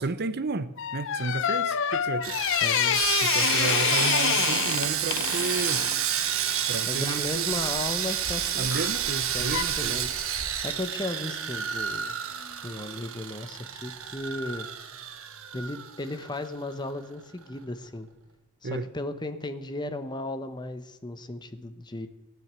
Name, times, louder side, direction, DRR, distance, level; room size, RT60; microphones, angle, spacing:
voice 1, 0.0-2.4 3.2-5.8 6.7-7.5 8.6-10.0 18.6-18.9, right 3 dB, 45° right, 0.7 m, -32 dB
sound 1, 0.8-6.0 8.7-9.0 9.5-9.6, left 9 dB, 55° left, 0.6 m, -27 dB
Sawing, 2.2-16.5 16.7-16.9 17.4-17.5, right 9 dB, 65° right, 1.4 m, -30 dB
voice 2, 2.6-3.0 6.9-8.7 9.3-10.1 10.6-12.1 12.6-14.7 15.5-18.1 18.6-22.1, left 1 dB, 20° left, 1.0 m, -35 dB
17.0 x 9.3 x 8.2 m
head